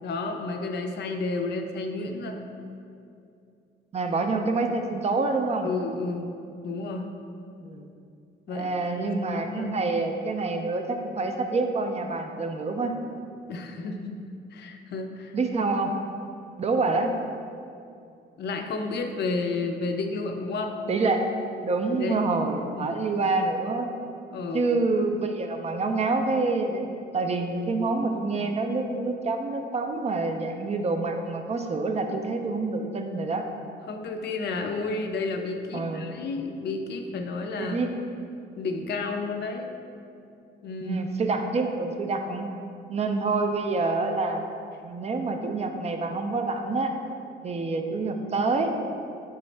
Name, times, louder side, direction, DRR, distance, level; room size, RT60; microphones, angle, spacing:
voice 1, 0.0-2.4 5.6-6.3 6.6-7.1 8.5-9.8 13.5-15.3 18.4-20.8 21.9-22.2 22.8-23.0 24.3-24.7 33.9-37.9 38.6-39.8 40.6-41.0, left 3 dB, 60° left, 5 dB, 0.4 m, -31 dB
voice 2, 3.9-5.7 7.6-7.9 8.5-13.0 15.3-15.9 16.6-17.1 20.9-21.3 21.6-23.9 24.5-26.8 27.1-33.4 35.7-36.0 37.5-38.0 40.8-42.5 42.9-44.4 44.8-46.9 47.4-48.7, right 3 dB, 35° right, 5 dB, 0.3 m, -27 dB
4.0 x 3.5 x 3.2 m, 2.5 s
cardioid pair, 90°, 20 cm